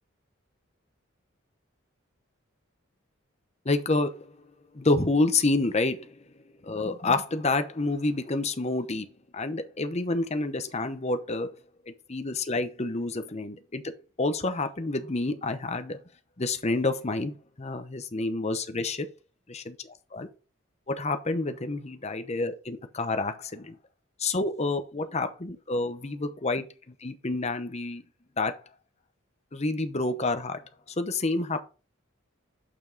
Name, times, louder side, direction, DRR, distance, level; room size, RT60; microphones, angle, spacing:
voice 1, 3.6-4.5 4.7-6.2 6.6-9.1 9.3-11.5 12.1-13.8 14.2-16.0 16.4-19.1 19.5-19.8 20.1-20.3 20.9-23.8 24.2-26.6 27.0-28.0 28.4-28.6 29.5-30.6 31.0-31.6, left 2 dB, 30° left, 0.8 m, -28 dB
7.0 x 5.8 x 3.9 m
head